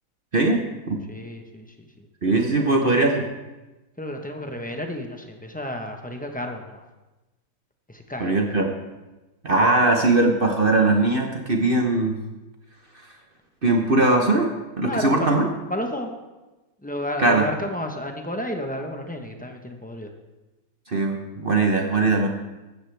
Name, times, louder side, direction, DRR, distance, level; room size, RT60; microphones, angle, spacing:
voice 1, 1.1-2.1 2.6-3.0 4.0-6.8 7.9-8.6 14.8-15.3 15.7-16.1 16.8-20.1, left 1 dB, 10° left, 3 dB, 0.4 m, -32 dB
voice 2, 2.2-3.2 8.2-8.7 9.4-12.2 13.6-15.4 17.2-17.4 20.9-22.3, right 2 dB, 40° right, 2 dB, 0.8 m, -20 dB
15.5 x 13.0 x 3.4 m, 1.1 s
omnidirectional pair, 2.2 m